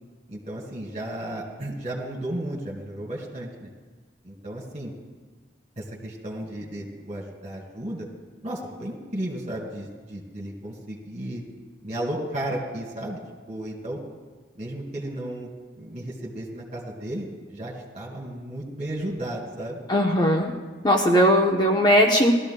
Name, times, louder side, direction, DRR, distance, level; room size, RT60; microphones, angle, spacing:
voice 1, 0.3-3.7 4.2-4.9 5.8-8.1 8.4-11.4 11.8-13.2 13.5-14.0 14.6-15.5 15.8-19.8, right 1 dB, 35° right, -2 dB, 2.3 m, -34 dB
voice 2, 19.9-20.5 20.8-22.3, equal, 20° left, 1 dB, 0.7 m, -19 dB
19.0 x 13.5 x 2.2 m, 1.3 s
head